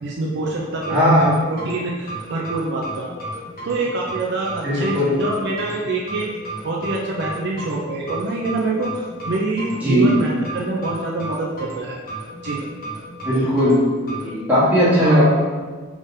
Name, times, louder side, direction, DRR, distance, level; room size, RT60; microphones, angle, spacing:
voice 1, 0.0-3.3 3.6-6.3 6.6-12.0 12.4-12.6 15.0-15.2, right 2 dB, 55° right, -2 dB, 0.4 m, -25 dB
sound 1, 0.8-14.3, right 2 dB, 45° left, 1.0 m, -33 dB
voice 2, 0.9-1.3 4.6-5.1 9.8-10.1 13.2-13.8 14.2-15.2, equal, 10° right, -11 dB, 1.3 m, -17 dB
3.6 x 3.6 x 2.6 m, 1.4 s
head